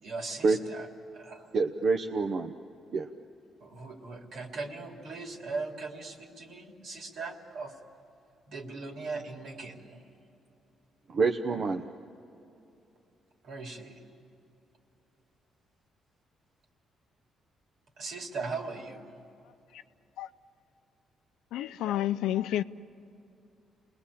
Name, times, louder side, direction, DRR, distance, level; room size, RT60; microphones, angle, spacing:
voice 1, 0.0-0.9 1.1-1.5 3.6-7.8 8.5-10.0 13.4-14.0 18.0-19.2, right 3 dB, 70° right, 3.1 m, -39 dB
voice 2, 1.5-2.5 2.9-3.1 11.1-11.8, right 4 dB, 55° right, 0.9 m, -26 dB
voice 3, 21.5-22.6, left 12 dB, 90° left, 0.6 m, -30 dB
28.5 x 20.0 x 8.5 m
cardioid pair, 90°, 0 cm